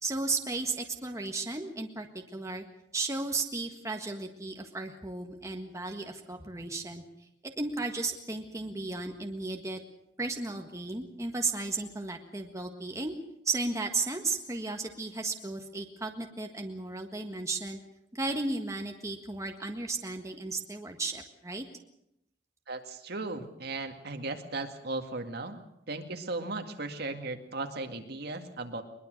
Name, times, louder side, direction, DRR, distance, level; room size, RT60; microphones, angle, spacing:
voice 1, 0.0-2.6 2.9-7.0 7.6-9.8 10.2-13.1 13.4-17.8 18.1-21.6, right 3 dB, 15° right, 3 dB, 1.6 m, -34 dB
voice 2, 22.7-25.6 25.9-28.8, right 2 dB, 60° right, 5 dB, 2.2 m, -36 dB
22.0 x 21.0 x 6.6 m, 0.80 s
head